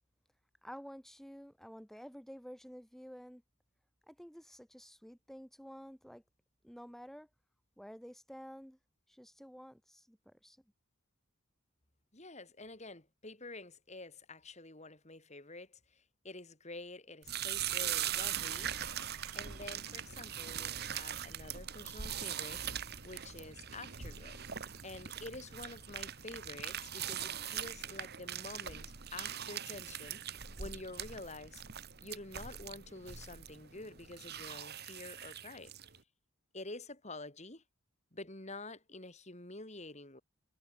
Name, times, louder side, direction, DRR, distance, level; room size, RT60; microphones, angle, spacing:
voice 1, 0.6-3.4 4.1-6.2 6.6-7.3 7.8-8.8 9.1-10.6, equal, ahead, 4.6 m, -51 dB
voice 2, 12.1-18.7 19.3-30.2 30.6-31.6 32.0-35.7 36.5-37.6 38.1-40.2, left 2 dB, 30° left, 3.5 m, -48 dB
sound 1, 17.2-36.0, right 10 dB, 50° right, 1.6 m, -41 dB
Shatter, 17.7-25.1, right 7 dB, 85° right, 5.2 m, -54 dB
head